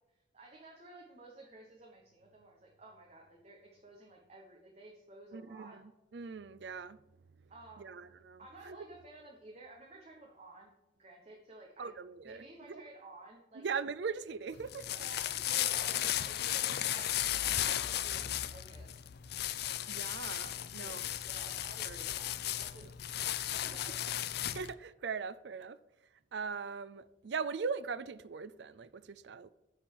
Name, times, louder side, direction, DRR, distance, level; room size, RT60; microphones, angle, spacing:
voice 1, 0.3-5.8 7.5-7.9 8.4-11.9 12.2-13.6 15.0-18.9 20.8-21.0 21.3-22.9 23.5-24.2, right 2 dB, 35° right, 1.2 m, -54 dB
voice 2, 5.3-5.8 6.1-7.0 7.8-8.4 8.7-8.8 11.8-12.8 13.6-14.9 19.9-21.0 21.9-22.0 24.5-25.8 26.3-29.5, right 5 dB, 65° right, 0.4 m, -40 dB
sound 1, 14.5-24.7, left 12 dB, 60° left, 0.4 m, -35 dB
10.0 x 4.4 x 7.2 m
head